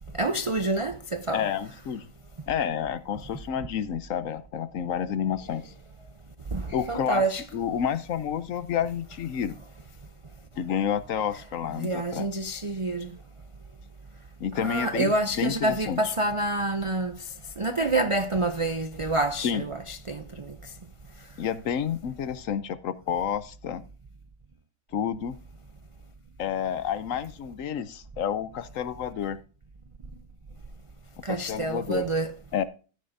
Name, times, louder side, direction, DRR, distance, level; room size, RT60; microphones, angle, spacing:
voice 1, 0.2-1.4 6.5-7.4 11.8-13.1 14.5-17.1 17.6-20.5 31.2-32.3, right 2 dB, 45° right, 0.4 m, -27 dB
voice 2, 1.3-2.1 2.5-5.7 6.7-7.2 7.5-9.6 10.6-12.3 14.4-16.1 19.4-19.7 21.4-23.8 24.9-25.4 26.4-29.4 31.3-32.0 32.5-32.6, left 8 dB, 70° left, 1.1 m, -29 dB
13.5 x 9.2 x 2.7 m
omnidirectional pair, 1.5 m